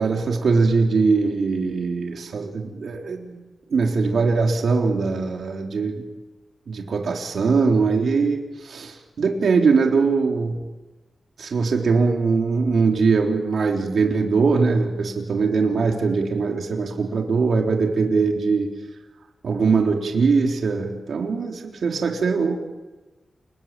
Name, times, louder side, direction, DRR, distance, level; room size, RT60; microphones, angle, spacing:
voice 1, 0.0-3.4 3.7-6.0 6.7-10.6 11.4-18.7 19.4-22.5, right 4 dB, 75° right, 1 dB, 3.8 m, -21 dB
29.5 x 22.0 x 9.2 m, 1.2 s
cardioid pair, 70°, 0 cm